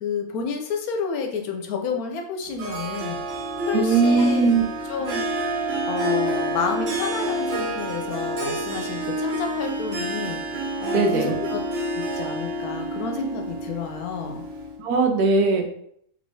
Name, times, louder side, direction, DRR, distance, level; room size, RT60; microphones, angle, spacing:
voice 1, 0.0-3.2 3.6-5.3 5.9-10.4 10.8-11.6 11.9-14.4, left 5 dB, 75° left, 3 dB, 1.0 m, -30 dB
Harp, 2.6-14.8, right 1 dB, 55° right, 0.8 m, -28 dB
voice 2, 3.7-4.6 10.9-11.3 14.8-15.7, right 4 dB, 75° right, 4 dB, 1.1 m, -19 dB
3.3 x 3.1 x 2.6 m, 0.68 s
omnidirectional pair, 1.7 m